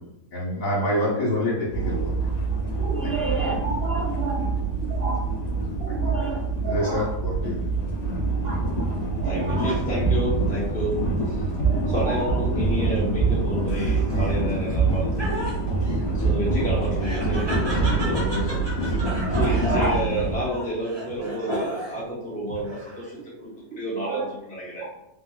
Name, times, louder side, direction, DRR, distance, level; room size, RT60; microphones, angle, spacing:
voice 1, 0.3-2.1 3.0-3.1 5.9-6.0 6.7-7.6, left 1 dB, 60° left, -5 dB, 1.6 m, -26 dB
sound 1, 1.7-20.4, right 3 dB, 80° left, 0.3 m, -25 dB
voice 2, 2.8-4.4 4.8-5.2 5.8-7.1 8.4-8.6 9.0-9.7 11.5-12.4 19.2-20.0 24.0-24.2 24.8-24.9, right 3 dB, 80° right, -3 dB, 0.5 m, -30 dB
voice 3, 9.2-11.3 11.9-15.4 15.7-18.8 19.4-24.9, equal, 10° left, -8 dB, 0.5 m, -30 dB
Laughter, 13.7-22.1 22.5-23.2, right 1 dB, 20° right, 0.8 m, -35 dB
3.8 x 2.9 x 2.3 m, 0.89 s
omnidirectional pair, 1.6 m